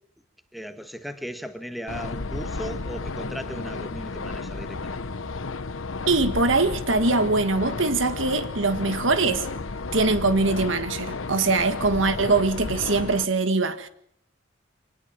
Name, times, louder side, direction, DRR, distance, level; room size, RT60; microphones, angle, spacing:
voice 1, 0.5-5.0, equal, ahead, 1.6 m, -37 dB
sound 1, 1.9-13.2, left 3 dB, 85° left, 1.1 m, -33 dB
voice 2, 6.1-9.5 9.9-13.9, right 3 dB, 75° right, 1.7 m, -22 dB
25.0 x 19.5 x 7.4 m
head